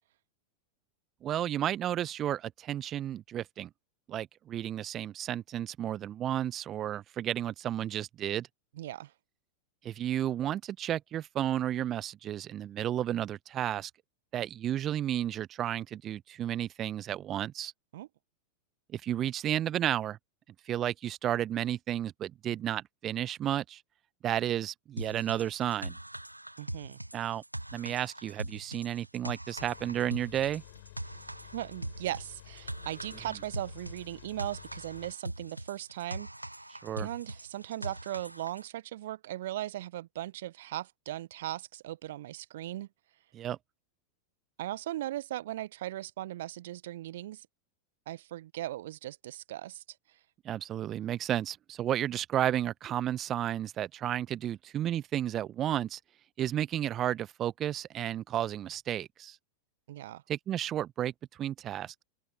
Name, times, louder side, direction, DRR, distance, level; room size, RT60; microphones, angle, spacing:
voice 1, 1.2-3.7 4.1-8.5 9.8-13.9 14.3-17.7 18.9-20.2 20.6-23.8 24.2-25.9 27.1-27.4 27.7-30.6 36.8-37.1 43.3-43.6 50.4-56.0 56.4-59.4 60.3-62.0, right 11 dB, 30° right, 1.0 m, -32 dB
voice 2, 8.8-9.1 17.9-18.1 26.6-27.0 31.5-36.3 37.0-42.9 44.6-47.5 48.1-49.8 59.9-60.2, right 14 dB, 55° right, 1.3 m, -38 dB
sound 1, 25.0-38.7, right 1 dB, 85° right, 0.6 m, -42 dB
sound 2, 29.6-35.1, left 17 dB, 55° left, 6.4 m, -52 dB
open air
figure-of-eight pair, 90°, 0 cm